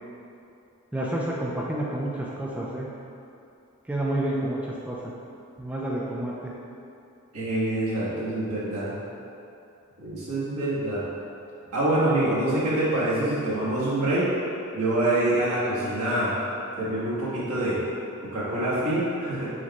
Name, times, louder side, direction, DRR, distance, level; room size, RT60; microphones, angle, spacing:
voice 1, 0.9-2.9 3.9-5.0 5.6-6.5 12.2-12.6, right 1 dB, 5° right, -5 dB, 0.3 m, -29 dB
voice 2, 7.3-8.9 10.0-11.0 11.7-14.3 14.7-16.3 16.8-17.8 18.2-19.5, right 1 dB, 75° right, -10 dB, 1.4 m, -25 dB
4.8 x 2.2 x 4.1 m, 2.7 s
head